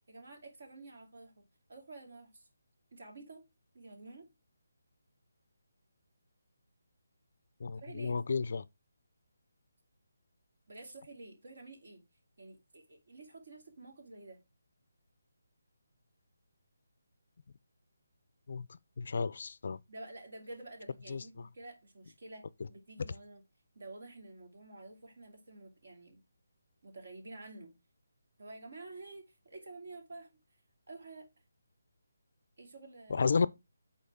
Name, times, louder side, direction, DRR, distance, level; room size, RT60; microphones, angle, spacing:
voice 1, 0.0-2.5 2.9-3.4 3.7-4.3 7.8-8.2 10.7-12.0 12.4-14.4 19.9-23.4 23.7-26.2 26.8-27.7 28.4-30.3 30.9-31.3 32.6-33.3, right 2 dB, 60° right, 2.4 m, -50 dB
voice 2, 7.6-8.6 18.5-18.7 19.0-19.8 21.1-21.2 33.1-33.5, left 5 dB, 50° left, 0.3 m, -32 dB
8.0 x 4.2 x 3.6 m
hypercardioid pair, 170°, 0 cm